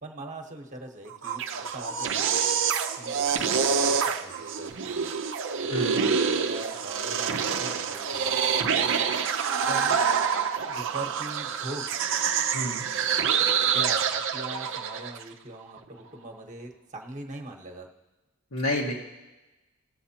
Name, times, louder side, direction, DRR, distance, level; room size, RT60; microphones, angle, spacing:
voice 1, 0.0-2.3 2.9-5.1 5.6-8.9 9.7-10.0 10.7-11.9 13.6-17.9, right 2 dB, 35° right, 2 dB, 1.2 m, -41 dB
sound 1, 1.1-15.2, right 6 dB, 60° right, 0.6 m, -26 dB
voice 2, 5.7-6.0 12.5-12.9 18.5-18.9, left 1 dB, 75° left, -3 dB, 1.5 m, -29 dB
18.5 x 7.4 x 2.9 m, 1.1 s
head